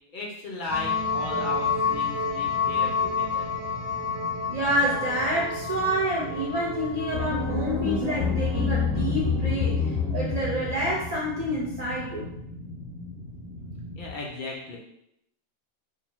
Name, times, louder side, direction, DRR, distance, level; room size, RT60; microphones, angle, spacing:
voice 1, 0.1-3.5 14.0-14.8, left 2 dB, 60° left, -2 dB, 0.5 m, -36 dB
sound 1, 0.7-14.1, left 1 dB, 45° right, 1.0 m, -40 dB
sound 2, 0.7-8.8, left 5 dB, 65° right, 0.8 m, -30 dB
voice 2, 4.5-12.3, right 1 dB, 85° right, -6 dB, 0.3 m, -28 dB
sound 3, 7.1-11.4, left 5 dB, ahead, 1.1 m, -27 dB
2.6 x 2.2 x 3.0 m, 0.77 s
omnidirectional pair, 1.4 m